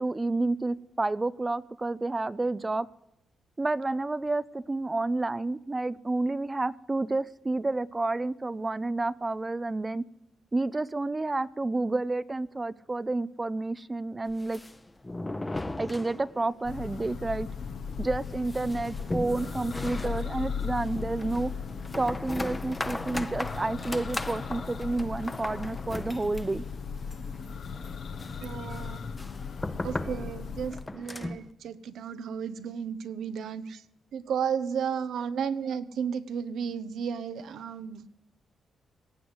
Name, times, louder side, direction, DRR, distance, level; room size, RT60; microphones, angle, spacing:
voice 1, 0.0-2.9 3.6-10.0 10.5-14.6 15.8-17.5 18.0-21.5 22.0-26.6, right 2 dB, 25° right, 17 dB, 0.5 m, -30 dB
sound 1, 14.3-16.6 16.9-17.0 17.3-17.4 17.9-31.5, left 2 dB, 15° left, 0.7 m, -38 dB
Church bell, 16.6-30.9, left 6 dB, 65° left, 0.9 m, -37 dB
voice 2, 28.4-29.0 29.8-33.8 34.1-38.1, right 7 dB, 80° right, 13 dB, 0.8 m, -33 dB
18.0 x 7.9 x 7.9 m, 0.84 s
cardioid pair, 75°, 0 cm